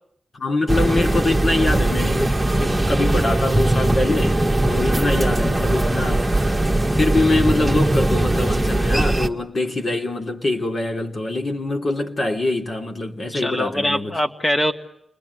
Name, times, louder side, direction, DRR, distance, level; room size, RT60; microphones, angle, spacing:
voice 1, 0.3-6.3 6.9-14.1, left 2 dB, 45° left, 3.2 m, -24 dB
sound 1, 0.7-9.3, right 1 dB, 10° right, 1.9 m, -20 dB
voice 2, 13.3-14.7, left 1 dB, 25° left, 2.6 m, -22 dB
29.0 x 21.5 x 9.5 m
cardioid pair, 85°, 0 cm